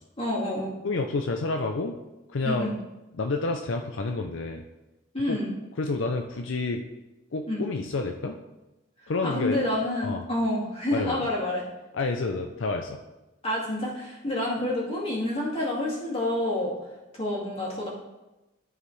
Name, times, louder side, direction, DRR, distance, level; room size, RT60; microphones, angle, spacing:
voice 1, 0.2-0.7 2.4-2.7 5.1-5.5 7.5-7.6 9.2-11.6 13.4-16.7 17.1-17.9, left 1 dB, 30° left, -5 dB, 2.5 m, -28 dB
voice 2, 0.8-1.9 2.3-2.7 3.2-4.6 5.3-5.4 5.8-6.8 7.3-8.4 9.1-9.6 10.0-10.2 10.9-11.3 11.9-13.0, left 3 dB, 75° left, 4 dB, 0.6 m, -29 dB
13.0 x 4.8 x 3.2 m, 1.0 s
head